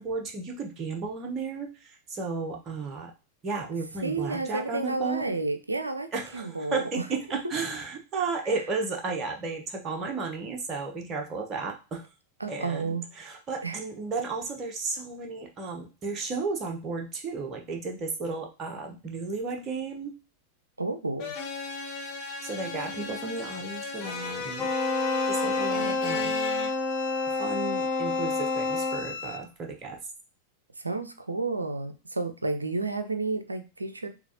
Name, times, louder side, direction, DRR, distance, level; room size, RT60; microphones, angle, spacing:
voice 1, 0.0-3.1 3.4-5.2 6.1-12.0 12.5-20.1 22.4-24.7 25.2-26.4 27.3-30.0, right 4 dB, 30° right, 2 dB, 1.0 m, -33 dB
voice 2, 4.0-7.0 12.4-13.1 13.6-13.8 20.8-21.3 30.8-34.1, right 3 dB, 80° right, 9 dB, 0.5 m, -31 dB
sound 1, 21.2-26.7, left 4 dB, 35° left, 1.4 m, -36 dB
Bowed string instrument, 24.5-29.4, left 7 dB, 60° left, 0.6 m, -39 dB
Wind instrument woodwind instrument, 24.6-29.1, left 3 dB, 20° left, 0.8 m, -28 dB
6.6 x 2.4 x 2.8 m, 0.31 s
figure-of-eight pair, 90°, 0 cm